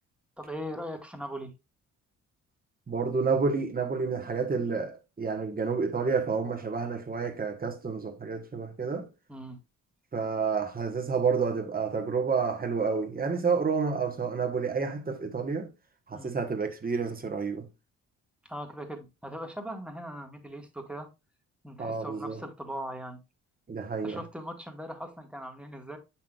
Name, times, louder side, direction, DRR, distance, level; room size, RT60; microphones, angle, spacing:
voice 1, 0.4-1.5 9.3-9.6 16.1-16.4 18.4-21.1 21.6-23.2 24.0-26.0, equal, 5° right, 1.4 m, -39 dB
voice 2, 2.9-9.1 10.1-15.7 16.1-17.7 21.8-22.4 23.7-24.2, right 5 dB, 30° right, 1.3 m, -29 dB
7.4 x 5.8 x 2.4 m
cardioid pair, 90°, 30 cm